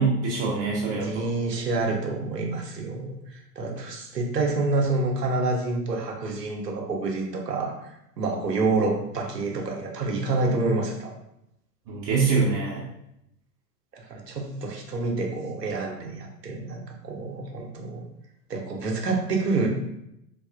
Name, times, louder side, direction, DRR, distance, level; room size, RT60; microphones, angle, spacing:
voice 1, 0.0-1.3 11.9-12.8, right 4 dB, 35° right, -5 dB, 0.5 m, -24 dB
voice 2, 0.9-7.9 8.2-11.1 13.9-18.0 18.5-19.7, right 3 dB, 90° right, 1 dB, 0.7 m, -28 dB
3.2 x 2.3 x 2.4 m, 0.82 s
figure-of-eight pair, 90°, 47 cm